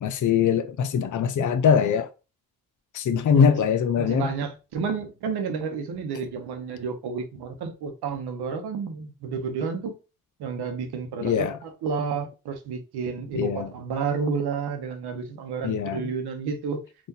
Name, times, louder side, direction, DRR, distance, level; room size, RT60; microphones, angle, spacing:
voice 1, 0.0-2.1 2.9-4.3 11.2-11.6 13.3-13.7 15.6-16.1, left 7 dB, 50° left, 0.6 m, -22 dB
voice 2, 3.3-3.6 4.0-10.0 10.4-16.8, right 5 dB, 80° right, 0.8 m, -31 dB
3.7 x 2.5 x 2.7 m
supercardioid pair, 40°, 38 cm